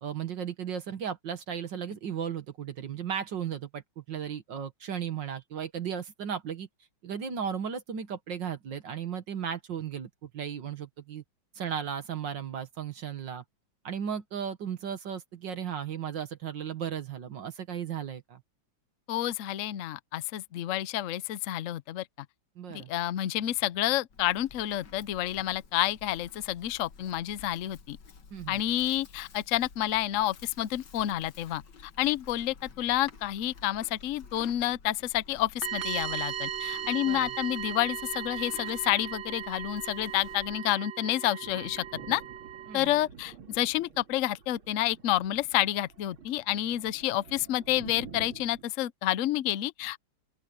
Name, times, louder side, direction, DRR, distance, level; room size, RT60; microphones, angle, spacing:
voice 1, 0.0-6.7 7.0-11.2 11.6-13.4 13.8-18.4 22.6-22.9 28.3-28.6 37.1-37.3 42.7-42.9, right 8 dB, 65° right, 2.0 m, -35 dB
voice 2, 19.1-22.0 22.7-28.0 28.5-42.2 42.7-50.0, left 14 dB, 80° left, 0.7 m, -29 dB
Livestock farm animals working animals, 24.1-40.6, left 5 dB, 60° left, 2.3 m, -52 dB
sound 1, 35.6-43.0, right 10 dB, 50° right, 0.9 m, -37 dB
Thunder, 41.4-48.6, right 6 dB, 90° right, 3.1 m, -49 dB
open air
omnidirectional pair, 2.2 m